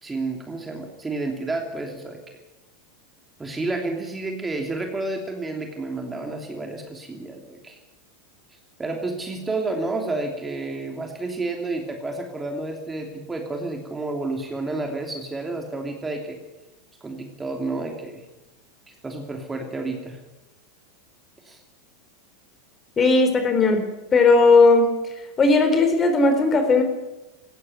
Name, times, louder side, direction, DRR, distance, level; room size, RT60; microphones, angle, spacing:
voice 1, 0.0-2.2 3.4-7.8 8.8-16.4 17.0-18.2 18.9-20.2 21.4-21.6, right 2 dB, 15° right, 3 dB, 3.0 m, -30 dB
voice 2, 23.0-23.8 24.1-24.9 25.4-26.8, left 3 dB, 25° left, 7 dB, 4.4 m, -16 dB
18.5 x 15.5 x 9.4 m, 1.0 s
figure-of-eight pair, 85°, 0 cm